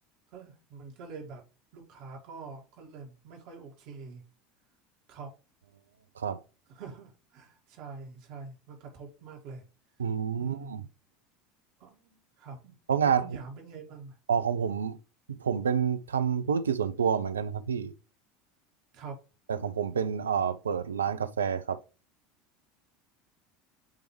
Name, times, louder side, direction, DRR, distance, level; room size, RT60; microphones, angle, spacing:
voice 1, 0.3-1.4 1.7-4.2 5.1-5.3 6.7-9.6 10.4-10.7 11.8-12.8 13.0-14.2 18.9-19.2, right 4 dB, 55° right, 2.1 m, -45 dB
voice 2, 10.0-10.8 12.9-13.3 14.3-15.0 15.3-17.9 19.5-21.8, right 7 dB, 80° right, 0.5 m, -28 dB
8.9 x 3.5 x 3.2 m
figure-of-eight pair, 75°, 0 cm